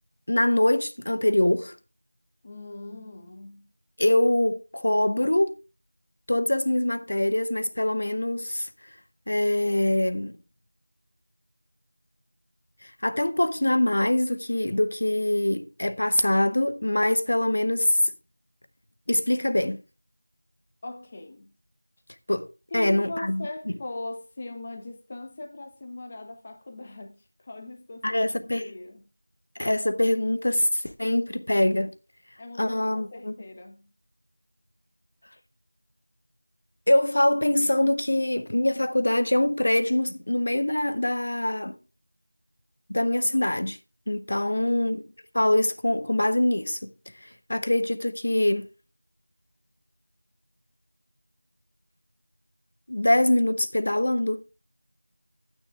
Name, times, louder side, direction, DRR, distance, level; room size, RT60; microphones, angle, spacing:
voice 1, 0.3-1.8 4.0-5.5 6.3-8.7 9.3-10.4 12.8-18.0 19.1-19.8 22.3-23.5 28.0-28.6 29.6-31.9 32.6-33.3 36.9-41.8 42.9-43.8 44.1-45.0 45.3-46.9 47.2-48.7 52.9-54.4, left 1 dB, 40° left, 1.0 m, -24 dB
voice 2, 2.4-3.7 20.8-21.5 22.7-28.3 28.6-29.0 32.4-33.9 44.3-44.8, left 2 dB, 15° left, 0.9 m, -40 dB
13.0 x 9.3 x 2.4 m
figure-of-eight pair, 175°, 0 cm